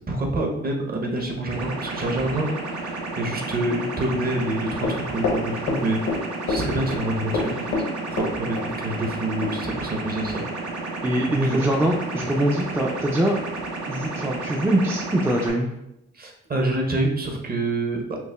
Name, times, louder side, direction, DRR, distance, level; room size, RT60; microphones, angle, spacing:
voice 1, 0.1-7.7 8.1-10.9 11.3-11.7 16.2-18.2, right 1 dB, 30° right, 1 dB, 0.7 m, -27 dB
sound 1, 1.5-15.5, right 3 dB, 75° right, 0.8 m, -32 dB
Run, 4.8-6.2 6.5-7.0 7.3-8.7 9.0-9.1 9.4-9.5, left 4 dB, 80° left, 0.8 m, -26 dB
voice 2, 11.0-13.4 13.9-15.7, right 1 dB, 10° right, 0 dB, 0.3 m, -23 dB
5.7 x 2.1 x 2.2 m, 0.85 s
cardioid pair, 90°, 30 cm